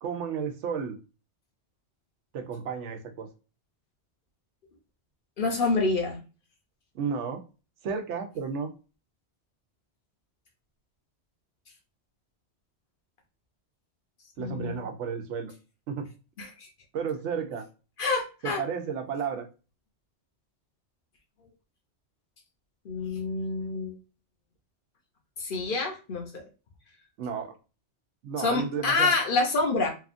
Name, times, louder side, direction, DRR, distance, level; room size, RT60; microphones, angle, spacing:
voice 1, 0.0-1.0 2.3-3.3 6.9-7.4 7.8-8.7 14.4-15.5 15.9-16.1 16.9-17.7 18.4-19.5 27.2-27.5 28.2-29.1, right 6 dB, 85° right, 5 dB, 0.9 m, -32 dB
voice 2, 5.4-6.2 14.4-14.8 16.4-16.7 18.0-18.6 22.8-23.9 25.4-26.4 28.4-29.9, left 3 dB, 55° left, 2 dB, 0.8 m, -27 dB
2.8 x 2.4 x 2.4 m, 0.32 s
omnidirectional pair, 1.2 m